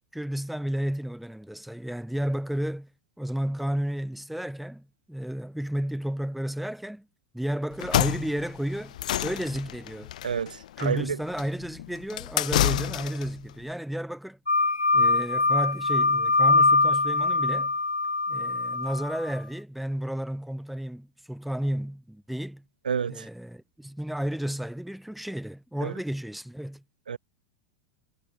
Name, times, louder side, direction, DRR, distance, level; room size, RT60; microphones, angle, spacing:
voice 1, 0.1-2.9 3.2-7.1 7.3-9.0 9.2-10.1 10.8-14.4 14.9-17.7 18.3-22.6 23.1-26.8, equal, ahead, 3.1 m, -32 dB
sound 1, 7.7-13.4, left 13 dB, 65° left, 1.8 m, -29 dB
voice 2, 10.2-11.1 22.9-23.3 25.8-25.9 27.1-27.2, right 7 dB, 80° right, 0.5 m, -29 dB
sound 2, 14.5-19.3, left 3 dB, 90° left, 0.5 m, -23 dB
figure-of-eight pair, 85°, 4 cm